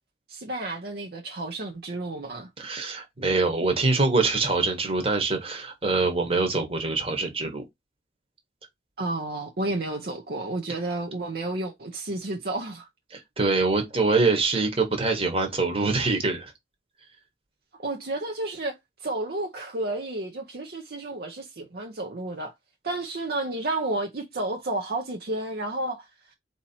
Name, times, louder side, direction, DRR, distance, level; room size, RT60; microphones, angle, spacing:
voice 1, 0.3-2.5 9.0-12.9 17.8-22.5 22.8-26.3, right 2 dB, 55° right, 0.6 m, -31 dB
voice 2, 2.6-7.6 13.1-16.5, right 3 dB, 30° right, 1.1 m, -24 dB
4.3 x 2.8 x 4.3 m
head